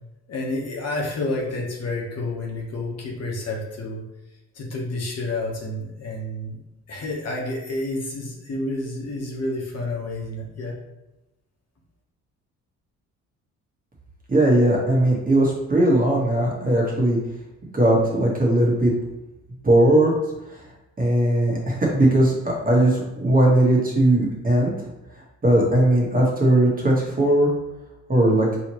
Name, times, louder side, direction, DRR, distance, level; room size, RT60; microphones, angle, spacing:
voice 1, 0.3-4.0 4.5-6.6 6.9-10.8, left 2 dB, 55° left, -1 dB, 1.2 m, -29 dB
voice 2, 14.3-17.2 17.7-18.9 19.6-20.1 21.0-24.9 25.4-27.5 28.1-28.5, right 1 dB, 30° right, -3 dB, 1.4 m, -19 dB
4.8 x 3.1 x 3.0 m, 0.93 s
cardioid pair, 90°, 30 cm